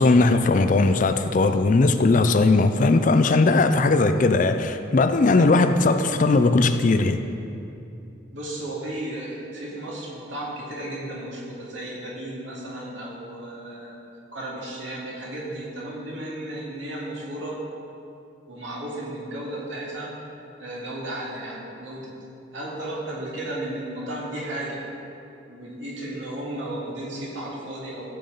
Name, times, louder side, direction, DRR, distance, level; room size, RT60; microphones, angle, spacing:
voice 1, 0.0-7.2, left 3 dB, 40° left, 9 dB, 0.4 m, -19 dB
voice 2, 8.3-14.0 14.3-17.6 18.5-20.2 20.6-22.1 22.5-24.9 25.5-28.1, right 1 dB, 70° right, -4 dB, 2.2 m, -34 dB
14.5 x 7.0 x 3.9 m, 2.7 s
head